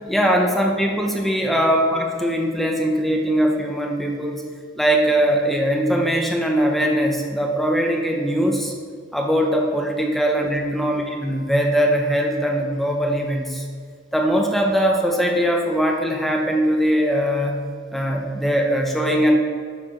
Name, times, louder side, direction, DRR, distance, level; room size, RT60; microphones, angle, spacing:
voice 1, 0.1-4.4 4.8-8.7 9.1-13.7 14.1-17.5 17.9-19.4, equal, ahead, 0 dB, 0.7 m, -21 dB
11.5 x 4.4 x 4.3 m, 2.1 s
head